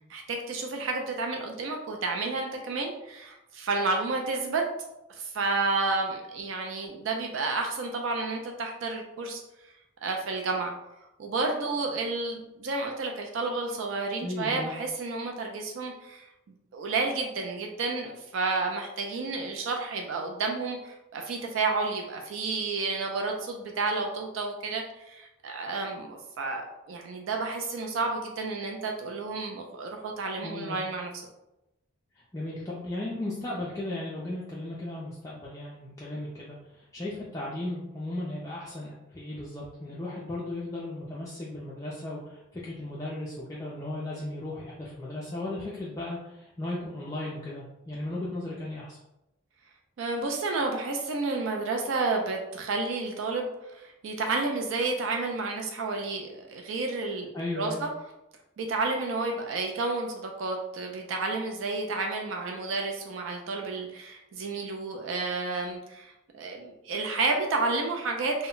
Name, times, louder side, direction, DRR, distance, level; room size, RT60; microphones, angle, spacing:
voice 1, 0.1-4.6 5.1-9.4 10.0-10.7 11.2-16.3 16.7-31.1 50.0-57.3 57.6-57.9 58.6-68.5, right 3 dB, 75° right, 3 dB, 0.3 m, -31 dB
voice 2, 14.2-14.7 30.4-30.8 32.3-49.0 57.3-57.8, left 1 dB, 15° left, -7 dB, 0.3 m, -36 dB
2.1 x 2.0 x 3.7 m, 0.91 s
head